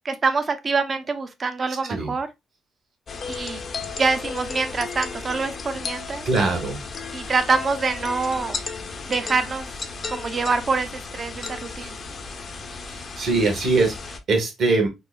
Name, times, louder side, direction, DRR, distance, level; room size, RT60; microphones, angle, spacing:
voice 1, 0.0-2.3 3.3-3.6 4.0-6.2 7.1-8.6 9.1-9.7 10.1-12.0, right 4 dB, 35° right, 0.4 m, -25 dB
sound 1, 3.1-14.2, left 4 dB, 45° left, 0.5 m, -34 dB
voice 2, 6.3-6.8 12.9-13.9 14.3-14.9, right 3 dB, 60° right, 1.1 m, -22 dB
3.7 x 2.1 x 2.3 m
cardioid pair, 90°, 0 cm